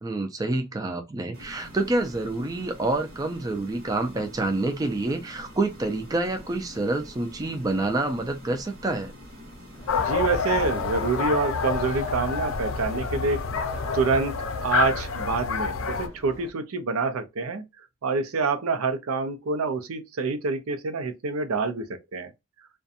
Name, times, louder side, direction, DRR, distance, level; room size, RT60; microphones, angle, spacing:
voice 1, 0.0-9.1, right 2 dB, 15° right, 0.3 m, -27 dB
sound 1, 1.3-11.3, equal, 45° right, 0.8 m, -45 dB
sound 2, 9.7-16.5, left 1 dB, 15° left, 0.7 m, -45 dB
sound 3, 9.9-16.1, left 5 dB, 70° left, 0.5 m, -28 dB
voice 2, 9.9-13.4 13.9-17.6 18.0-22.3, right 4 dB, 80° right, 0.5 m, -27 dB
2.5 x 2.2 x 2.6 m
head